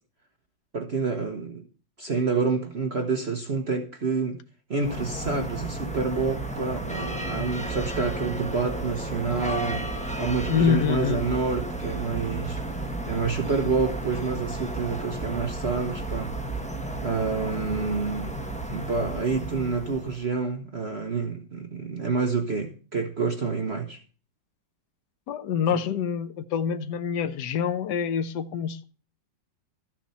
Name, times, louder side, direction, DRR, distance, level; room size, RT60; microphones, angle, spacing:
voice 1, 0.7-1.6 2.0-4.4 4.7-9.9 10.2-12.6 13.1-16.3 17.0-18.3 18.7-24.0 25.7-25.8, right 4 dB, 40° right, 1.3 m, -28 dB
sound 1, 4.8-20.3, right 2 dB, 5° left, 1.1 m, -33 dB
voice 2, 10.5-11.3 25.3-28.8, left 7 dB, 75° left, 1.5 m, -26 dB
13.5 x 7.3 x 5.6 m
omnidirectional pair, 1.9 m